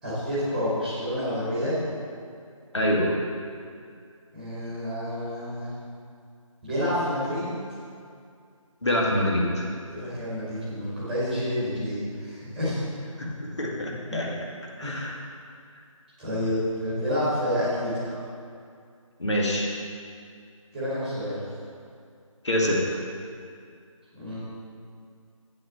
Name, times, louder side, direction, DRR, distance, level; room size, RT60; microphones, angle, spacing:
voice 1, 0.0-1.8 4.3-5.7 6.6-7.5 9.9-12.8 13.9-14.2 14.8-14.9 16.2-18.1 20.7-21.4 24.1-24.4, equal, ahead, -11 dB, 1.9 m, -29 dB
voice 2, 2.7-3.1 8.8-9.7 13.2-14.3 14.8-15.2 19.2-19.7 22.4-23.0, equal, 55° left, -2 dB, 2.0 m, -25 dB
8.6 x 6.5 x 6.8 m, 2.3 s
figure-of-eight pair, 160°, 18 cm